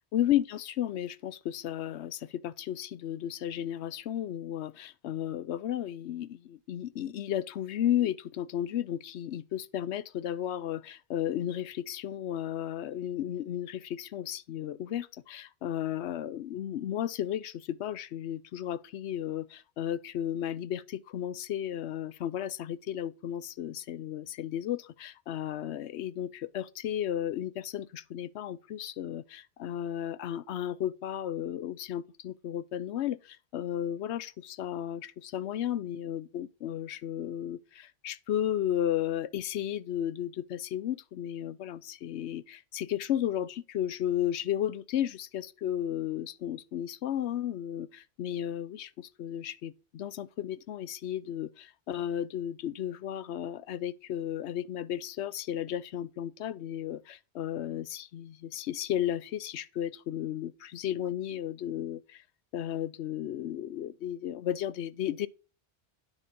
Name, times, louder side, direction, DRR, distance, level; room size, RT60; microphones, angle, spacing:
voice 1, 0.1-62.2 62.5-65.3, left 11 dB, 85° left, 0.9 m, -34 dB
9.9 x 5.3 x 5.1 m
omnidirectional pair, 1.1 m